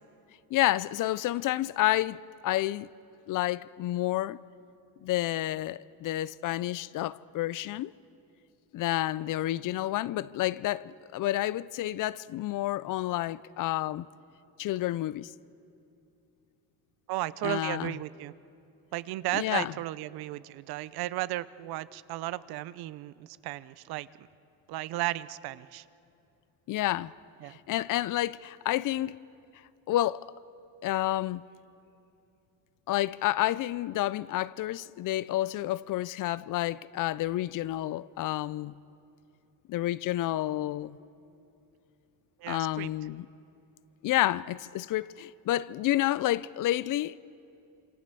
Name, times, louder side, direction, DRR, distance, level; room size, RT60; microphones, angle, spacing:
voice 1, 0.5-2.9 3.3-4.4 5.0-7.9 8.7-14.1 14.6-15.3 17.4-17.9 19.3-19.7 26.7-27.1 27.7-29.2 29.9-30.3 30.8-31.4 32.9-38.7 39.7-41.0 42.5-43.3 44.0-47.2, left 15 dB, 55° left, 0.6 m, -29 dB
voice 2, 17.1-18.3 18.9-24.3 24.7-25.9 27.4-27.6 42.4-42.9, right 16 dB, 70° right, 0.8 m, -34 dB
27.0 x 25.5 x 6.9 m
cardioid pair, 120°, 38 cm